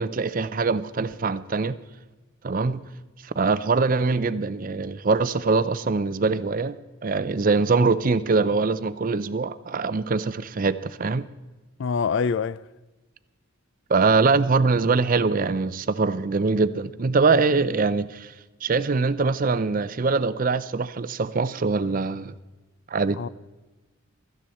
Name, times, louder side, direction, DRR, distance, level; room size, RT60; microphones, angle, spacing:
voice 1, 0.0-1.8 2.4-2.8 3.2-6.7 7.0-11.3 13.9-18.3 18.6-22.3 22.9-23.2, right 4 dB, 40° right, 0.5 m, -23 dB
voice 2, 11.8-12.6 23.2-23.3, left 5 dB, 55° left, 0.3 m, -25 dB
16.5 x 13.5 x 4.3 m
head